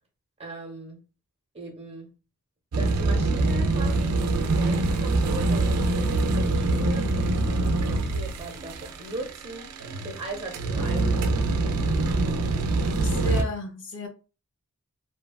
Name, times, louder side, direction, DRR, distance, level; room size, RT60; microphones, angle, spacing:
voice 1, 0.4-1.0 1.5-2.1 2.8-9.7 10.0-11.5, right 2 dB, 25° right, 0.8 m, -39 dB
sound 1, 2.7-13.4, right 2 dB, 80° right, 0.4 m, -24 dB
voice 2, 12.9-14.1, left 2 dB, 55° left, 0.6 m, -33 dB
2.8 x 2.2 x 2.3 m
head